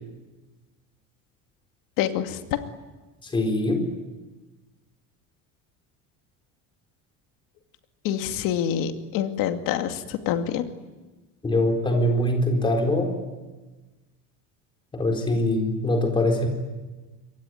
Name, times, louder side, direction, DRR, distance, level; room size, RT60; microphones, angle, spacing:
voice 1, 2.0-2.4 8.0-10.6, left 10 dB, 65° left, 6 dB, 2.4 m, -26 dB
voice 2, 3.3-3.8 11.4-13.1 14.9-16.5, left 1 dB, 15° left, 3 dB, 4.2 m, -23 dB
26.5 x 23.0 x 9.4 m, 1.2 s
cardioid pair, 175°, 37 cm